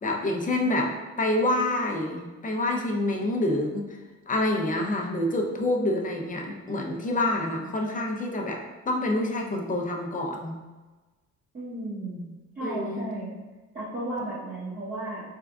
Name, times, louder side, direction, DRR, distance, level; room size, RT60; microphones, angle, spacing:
voice 1, 0.0-3.8 4.3-10.5 12.6-13.0, left 1 dB, 25° left, 1 dB, 0.6 m, -27 dB
voice 2, 11.5-12.3 12.5-13.3 13.7-15.2, right 1 dB, 30° right, -11 dB, 1.1 m, -34 dB
3.7 x 3.4 x 2.3 m, 1.2 s
cardioid pair, 90°, 30 cm